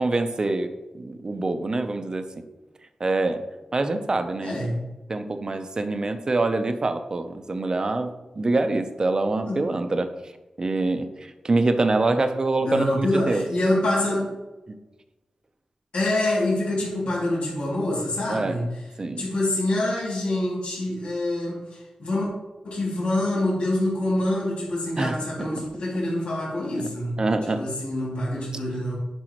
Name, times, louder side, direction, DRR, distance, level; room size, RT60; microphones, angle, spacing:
voice 1, 0.0-2.3 3.0-3.4 3.7-4.6 5.1-10.1 10.6-13.4 14.7-14.8 18.3-18.6 19.0-19.2 25.0-25.5 26.8-26.9 27.2-27.6 28.4-28.5, right 2 dB, 40° right, 8 dB, 0.7 m, -25 dB
voice 2, 4.4-4.9 9.5-9.6 12.6-14.3 15.9-18.8 19.2-22.3 22.6-28.9, left 1 dB, 75° left, -5 dB, 2.7 m, -26 dB
10.5 x 5.5 x 3.1 m, 1.1 s
wide cardioid pair, 100°, 2 cm